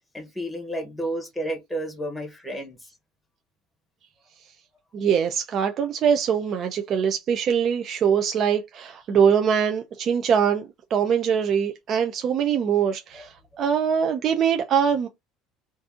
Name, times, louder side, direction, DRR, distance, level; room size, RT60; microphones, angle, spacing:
voice 1, 0.1-2.8 13.1-13.3 13.5-13.6, right 1 dB, ahead, 0.9 m, -31 dB
voice 2, 4.9-15.1, right 7 dB, 35° right, 0.4 m, -23 dB
2.6 x 2.5 x 3.5 m
cardioid pair, 165°, 0 cm